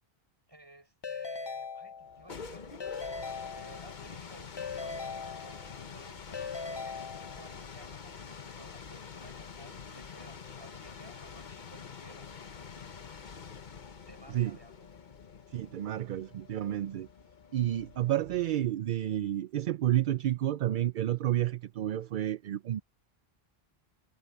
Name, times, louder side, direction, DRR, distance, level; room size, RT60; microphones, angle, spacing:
voice 1, 0.5-4.5 4.8-7.0 7.4-12.3 14.1-14.9, right 1 dB, 25° right, 6.3 m, -56 dB
Keyboard (musical) / Ringtone, 1.0-2.4 2.8-4.1 4.6-5.9 6.3-7.7, left 5 dB, 30° left, 0.6 m, -40 dB
sound 1, 2.0-18.7, left 6 dB, 50° left, 1.1 m, -47 dB
voice 2, 15.5-17.1 17.5-22.8, right 12 dB, 60° right, 0.6 m, -30 dB
omnidirectional pair, 1.1 m